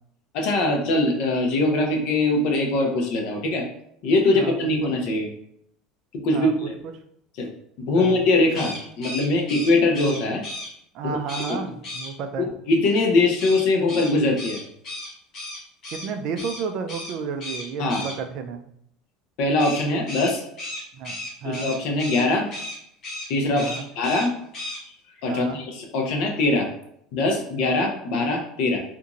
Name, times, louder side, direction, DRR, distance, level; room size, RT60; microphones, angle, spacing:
voice 1, 0.3-3.6 4.0-5.3 6.2-6.7 7.4-7.5 7.8-10.4 11.0-11.2 11.5-11.6 12.4-14.6 17.8-18.0 19.4-20.4 21.4-22.5 23.3-24.3 25.2-26.7 27.1-28.8, left 2 dB, 55° left, 2 dB, 0.6 m, -22 dB
voice 2, 6.3-6.7 7.9-8.2 10.9-12.5 15.9-18.6 20.9-21.2 21.4-21.7 23.6-23.9 25.3-25.6, right 6 dB, 45° right, 7 dB, 0.3 m, -32 dB
sound 1, 8.5-10.7 11.3-11.5 11.8-12.1 13.4-16.1 16.4-16.6 16.9-17.1 17.4-18.1 19.6-22.2 22.5-22.8 23.0-23.3 23.5-24.3 24.5-24.8, left 1 dB, 35° left, 1.2 m, -34 dB
2.9 x 2.5 x 2.4 m, 0.72 s
cardioid pair, 160°, 0 cm